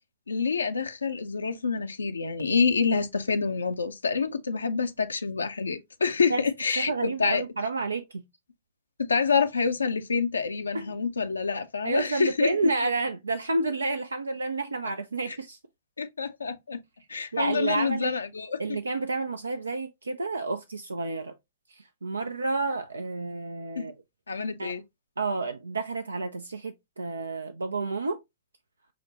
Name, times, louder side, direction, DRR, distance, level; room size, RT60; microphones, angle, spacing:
voice 1, 0.3-7.4 9.1-12.5 15.3-15.4 16.0-16.8 17.1-18.6 23.8-23.9 24.3-24.8, left 5 dB, 80° left, 0.5 m, -27 dB
voice 2, 6.8-8.2 10.7-10.8 11.8-15.6 17.3-18.1 18.6-21.3 21.7-23.9 24.6-24.7 25.2-28.2, right 3 dB, 80° right, 0.4 m, -30 dB
6.2 x 2.1 x 2.8 m
figure-of-eight pair, 105°, 0 cm